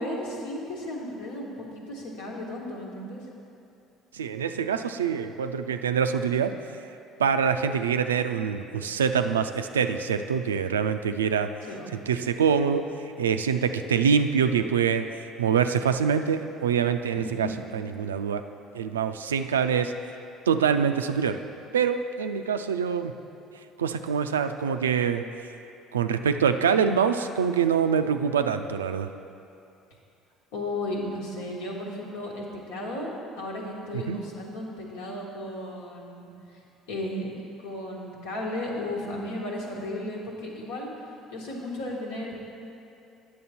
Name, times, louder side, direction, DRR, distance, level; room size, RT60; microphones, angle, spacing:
voice 1, 0.0-3.2 11.6-11.9 17.1-17.5 30.5-36.6 36.9-37.3 37.6-40.9 41.3-42.3, left 1 dB, 75° left, -2 dB, 1.4 m, -34 dB
voice 2, 4.1-6.5 7.2-11.5 12.1-12.9 13.2-15.1 15.4-17.5 17.7-18.4 18.7-19.9 20.5-21.4 21.7-23.1 23.8-25.2 25.9-29.1 33.9-34.2, right 7 dB, 90° right, 9 dB, 0.3 m, -25 dB
9.4 x 6.7 x 4.3 m, 2.7 s
hypercardioid pair, 60°, 0 cm